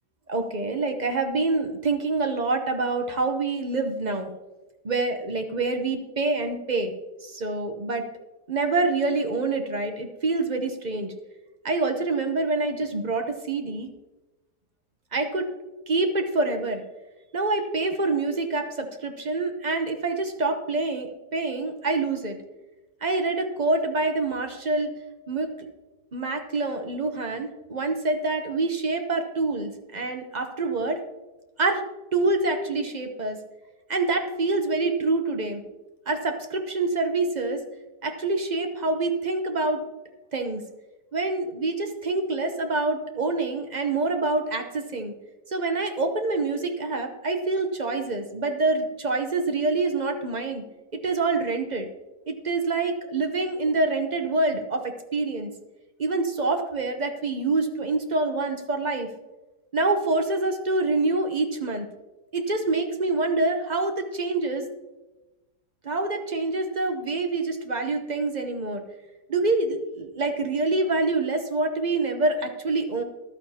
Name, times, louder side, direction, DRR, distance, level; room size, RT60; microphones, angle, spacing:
voice 1, 0.3-4.3 4.8-6.9 7.2-8.1 8.5-11.1 11.6-13.9 15.1-15.5 15.9-16.8 17.3-22.4 23.0-24.9 25.3-25.5 26.1-31.0 31.6-31.9 32.1-33.4 33.9-35.6 36.1-37.6 38.0-39.8 40.3-40.6 41.1-45.1 45.5-50.6 50.9-51.9 52.3-55.5 56.0-59.1 59.7-61.9 62.3-64.6 65.8-68.8 69.3-73.0, right 3 dB, 35° right, 6 dB, 0.7 m, -26 dB
14.5 x 11.5 x 2.9 m, 1.1 s
omnidirectional pair, 1.8 m